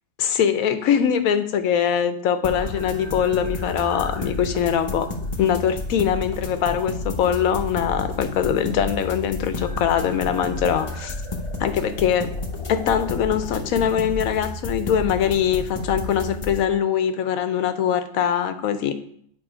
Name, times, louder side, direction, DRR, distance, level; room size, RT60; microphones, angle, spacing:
voice 1, 0.2-5.1 5.4-11.1 11.6-12.3 12.7-18.9, left 8 dB, 85° left, 10 dB, 1.1 m, -22 dB
sound 1, 2.4-16.6, left 2 dB, 30° left, 0.7 m, -31 dB
8.7 x 4.0 x 5.0 m, 0.66 s
omnidirectional pair, 1.4 m